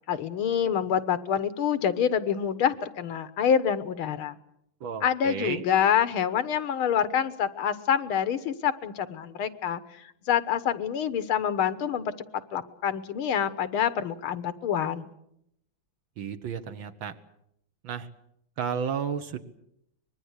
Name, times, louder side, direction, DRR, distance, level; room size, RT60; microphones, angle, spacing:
voice 1, 0.1-4.3 5.0-9.8 10.3-12.1 12.5-15.1, left 8 dB, 90° left, 13 dB, 2.0 m, -26 dB
voice 2, 4.8-5.6 16.2-17.1 17.8-18.1 18.6-19.4, right 7 dB, 70° right, 8 dB, 2.0 m, -32 dB
24.5 x 21.0 x 8.1 m, 0.77 s
omnidirectional pair, 2.2 m